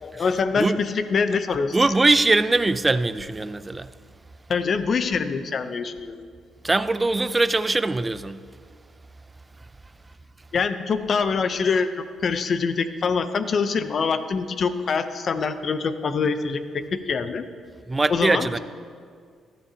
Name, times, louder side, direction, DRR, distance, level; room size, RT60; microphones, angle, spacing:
voice 1, 0.0-1.8 4.5-6.3 10.5-17.5 18.1-18.6, left 5 dB, 50° left, 0.6 m, -25 dB
voice 2, 1.7-3.9 6.6-8.4 17.9-18.6, right 2 dB, 20° right, 0.4 m, -21 dB
14.0 x 12.5 x 2.8 m
cardioid pair, 90°, 0 cm